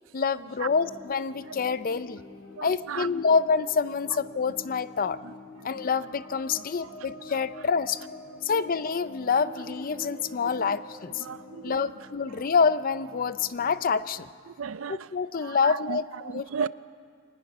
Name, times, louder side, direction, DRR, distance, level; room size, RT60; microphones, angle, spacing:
voice 1, 0.1-2.2 2.6-5.2 5.6-8.0 8.4-11.3 11.6-14.3 14.9-16.7, left 5 dB, 45° left, 15 dB, 0.5 m, -27 dB
sound 1, 0.6-14.1, left 2 dB, 75° left, 3.4 m, -46 dB
voice 2, 2.6-3.1 10.6-10.8 11.2-11.9 14.5-15.1 15.4-16.7, right 6 dB, 75° right, 16 dB, 0.5 m, -35 dB
23.5 x 19.5 x 6.1 m, 2.1 s
head